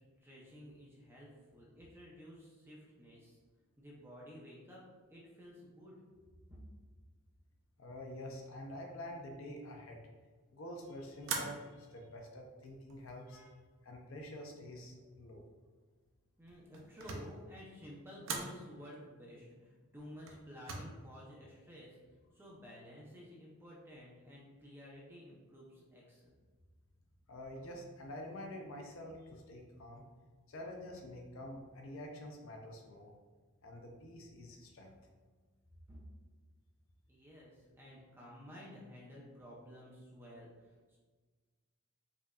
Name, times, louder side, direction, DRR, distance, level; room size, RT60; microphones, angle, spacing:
voice 1, 0.0-3.4 3.8-4.8 5.1-6.0 6.5-6.6 16.4-21.9 22.3-26.3 35.9-36.0 37.1-41.0, equal, 10° right, -5 dB, 0.5 m, -53 dB
voice 2, 7.8-10.0 10.5-13.6 13.8-15.5 27.3-30.0 30.5-33.1 33.6-35.0, left 1 dB, 65° left, 1 dB, 0.5 m, -47 dB
sound 1, 11.2-11.9 12.6-13.2 16.5-17.4 18.2-18.6 20.3-20.8, right 4 dB, 60° right, 0.5 m, -41 dB
4.9 x 2.5 x 2.3 m, 1.4 s
head